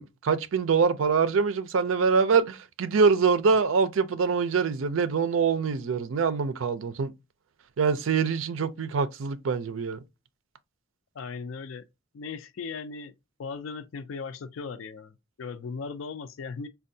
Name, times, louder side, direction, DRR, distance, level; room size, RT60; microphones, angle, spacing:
voice 1, 0.0-7.1 7.8-10.0, right 5 dB, 75° right, 0.5 m, -24 dB
voice 2, 11.1-11.9 12.1-13.1 13.4-16.7, left 5 dB, 80° left, 0.4 m, -37 dB
4.3 x 2.2 x 2.6 m
head